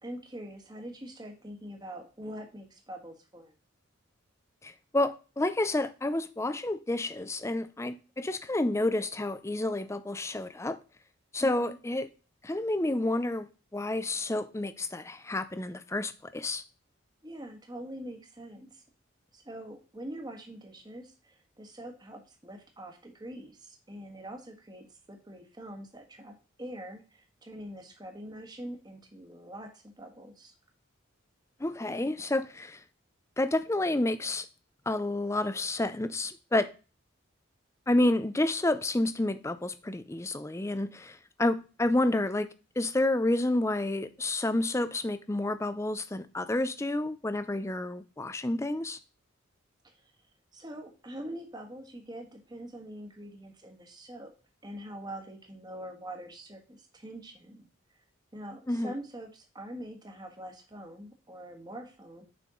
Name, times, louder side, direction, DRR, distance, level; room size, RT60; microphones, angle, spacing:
voice 1, 0.0-3.5 11.4-11.8 17.2-18.8 19.3-30.5 49.8-50.1 50.5-54.3 54.6-57.7 58.3-62.2, right 1 dB, 20° right, 1.4 m, -44 dB
voice 2, 4.6-10.8 11.3-12.1 12.4-16.6 31.6-32.8 33.4-34.5 34.9-36.7 37.9-42.5 42.8-49.0 58.7-58.9, left 2 dB, 15° left, 0.4 m, -29 dB
6.9 x 5.6 x 3.7 m
head